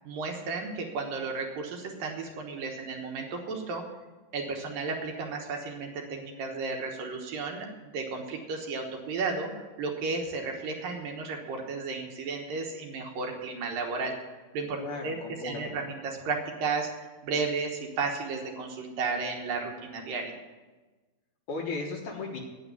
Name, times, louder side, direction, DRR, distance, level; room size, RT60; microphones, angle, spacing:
voice 1, 0.0-3.8 4.3-9.5 9.8-14.1 14.5-15.2 15.4-16.9 17.2-20.4, right 4 dB, 70° right, 2 dB, 2.7 m, -33 dB
voice 2, 14.8-15.7 21.5-22.4, left 3 dB, 60° left, 0 dB, 2.4 m, -35 dB
9.4 x 8.9 x 9.5 m, 1.2 s
omnidirectional pair, 4.6 m